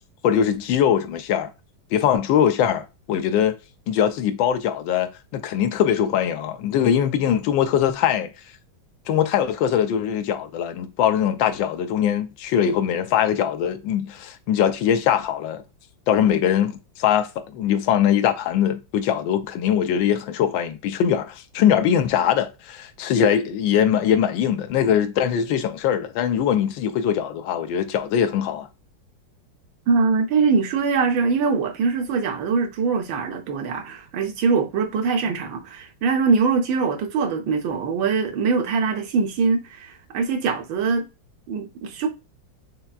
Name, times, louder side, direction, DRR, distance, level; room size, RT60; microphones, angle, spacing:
voice 1, 0.2-1.5 1.9-3.5 3.9-8.3 9.1-15.6 16.1-28.7, left 9 dB, 85° left, 1.4 m, -21 dB
voice 2, 29.9-41.1 41.5-42.1, right 5 dB, 90° right, 1.6 m, -22 dB
5.7 x 3.4 x 2.4 m
omnidirectional pair, 2.1 m